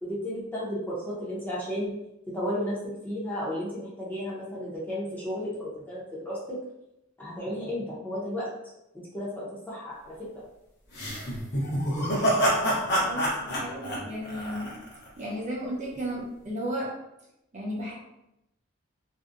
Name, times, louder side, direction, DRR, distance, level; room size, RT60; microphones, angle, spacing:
voice 1, 0.0-1.9 2.3-2.8 3.0-6.4 7.2-8.5 8.9-10.1, equal, 10° left, -7 dB, 0.6 m, -33 dB
sound 1, 10.9-15.1, equal, 60° left, 0.7 m, -27 dB
voice 2, 13.0-14.8 15.2-16.9 17.5-17.9, equal, 35° right, -4 dB, 0.6 m, -34 dB
2.6 x 2.0 x 2.4 m, 0.86 s
head